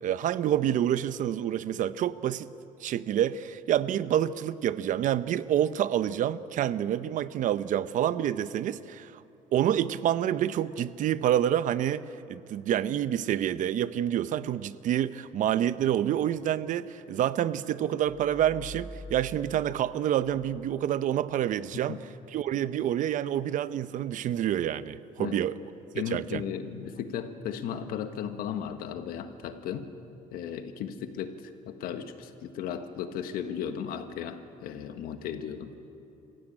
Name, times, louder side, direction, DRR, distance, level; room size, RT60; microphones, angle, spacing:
voice 1, 0.0-2.5 2.8-9.2 9.5-12.0 12.3-22.0 22.3-25.6 26.0-26.4, right 11 dB, 60° right, 15 dB, 0.7 m, -28 dB
sound 1, 18.3-21.0, equal, 5° right, 6.5 m, -45 dB
voice 2, 25.9-29.9 30.3-35.7, left 8 dB, 90° left, 8 dB, 1.5 m, -36 dB
25.5 x 16.0 x 8.8 m, 3.0 s
cardioid pair, 130°, 15 cm